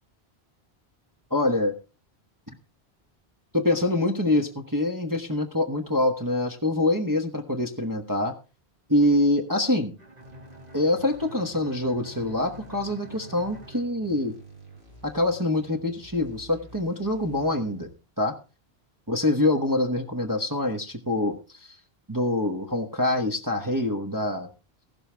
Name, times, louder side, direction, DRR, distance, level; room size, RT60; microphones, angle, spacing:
voice 1, 1.3-1.8 3.5-8.3 8.9-9.9 10.7-14.3 15.0-17.9 18.2-18.3 19.1-21.7 22.1-24.5, left 1 dB, 20° right, 1 dB, 1.1 m, -25 dB
Bowed string instrument, 10.0-14.8, left 1 dB, 40° right, 1.8 m, -48 dB
sound 1, 10.2-17.9, right 3 dB, 80° right, 6.6 m, -50 dB
14.5 x 12.5 x 3.4 m, 0.31 s
omnidirectional pair, 1.1 m